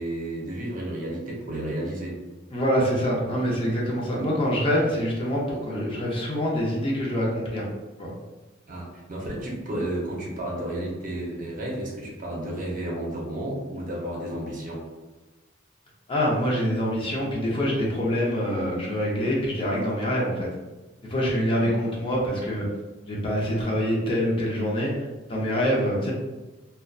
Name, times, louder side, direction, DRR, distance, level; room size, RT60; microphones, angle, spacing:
voice 1, 0.0-2.2 8.7-14.8, right 1 dB, 40° right, -3 dB, 0.6 m, -32 dB
voice 2, 2.5-7.6 8.0-8.1 16.1-20.5 21.0-22.7 23.1-26.1, equal, 25° left, -4 dB, 0.5 m, -25 dB
2.5 x 2.2 x 2.2 m, 1.1 s
head